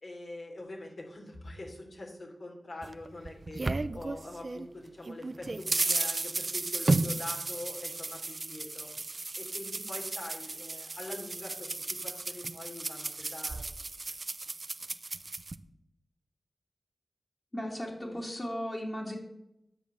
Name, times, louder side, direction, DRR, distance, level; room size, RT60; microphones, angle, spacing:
voice 1, 0.0-3.6 3.9-8.9 9.4-13.6 18.0-18.2, left 2 dB, 60° left, 0 dB, 3.0 m, -44 dB
sound 1, 2.8-4.7 5.0-15.6, right 3 dB, 45° right, 0.5 m, -34 dB
voice 2, 17.5-19.2, equal, 30° left, -2 dB, 2.6 m, -36 dB
10.0 x 6.9 x 6.9 m, 0.80 s
wide cardioid pair, 85°, 0 cm